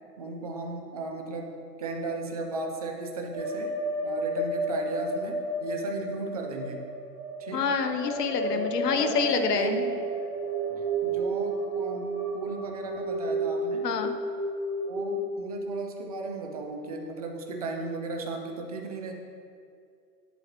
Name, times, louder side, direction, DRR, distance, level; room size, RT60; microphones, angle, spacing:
voice 1, 0.2-3.7 4.0-6.9 7.4-7.7 8.5-10.0 11.0-13.9 14.9-19.1, right 3 dB, 25° right, 2 dB, 0.4 m, -36 dB
sound 1, 3.3-15.1, right 2 dB, 5° right, 1.3 m, -31 dB
voice 2, 7.5-9.8 13.8-14.1, left 6 dB, 70° left, 8 dB, 0.9 m, -27 dB
9.2 x 7.9 x 2.9 m, 2.3 s
hypercardioid pair, 140°, 50 cm